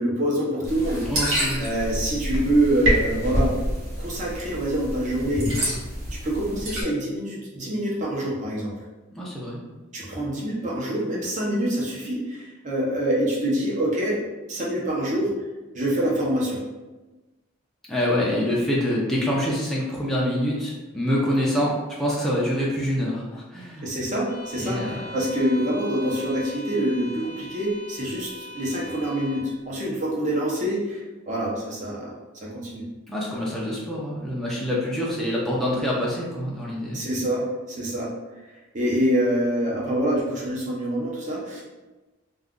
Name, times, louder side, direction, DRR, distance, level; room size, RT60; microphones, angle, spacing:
voice 1, 0.0-1.3 1.6-3.6 4.0-5.7 6.1-8.7 9.9-14.2 14.5-15.3 15.7-16.6 23.8-32.1 32.4-32.8 36.9-38.1 38.7-41.6, right 1 dB, 35° right, -4 dB, 0.7 m, -26 dB
sound 1, 0.6-6.8, equal, 80° right, 0.9 m, -27 dB
voice 2, 1.0-1.6 9.2-9.6 17.9-23.9 24.6-25.0 33.1-37.0, equal, ahead, -6 dB, 0.4 m, -26 dB
Bowed string instrument, 24.3-29.5, equal, 20° right, 1.1 m, -41 dB
2.4 x 2.3 x 3.6 m, 1.2 s
head